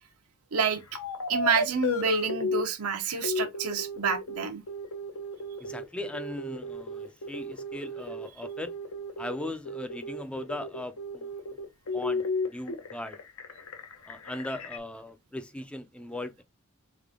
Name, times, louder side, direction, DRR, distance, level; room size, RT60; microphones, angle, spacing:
voice 1, 0.5-0.8 1.3-4.6, right 6 dB, 85° right, 0.8 m, -28 dB
sound 1, 0.9-2.6 3.1-14.8, left 2 dB, 80° left, 0.8 m, -33 dB
voice 2, 5.6-8.7 9.2-11.3 11.9-13.2 14.1-16.4, left 1 dB, 5° left, 0.4 m, -38 dB
3.7 x 3.6 x 3.5 m
head